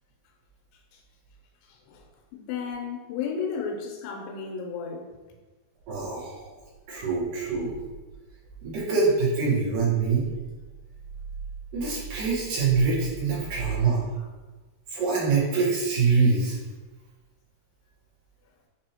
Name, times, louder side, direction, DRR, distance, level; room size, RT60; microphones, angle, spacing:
voice 1, 2.3-5.1, left 6 dB, 85° left, 1 dB, 2.8 m, -33 dB
voice 2, 5.9-6.5 6.9-7.7 8.6-10.2 11.7-14.1 14.9-16.6, right 4 dB, 65° right, -7 dB, 2.5 m, -24 dB
6.8 x 2.7 x 2.8 m, 1.2 s
omnidirectional pair, 4.8 m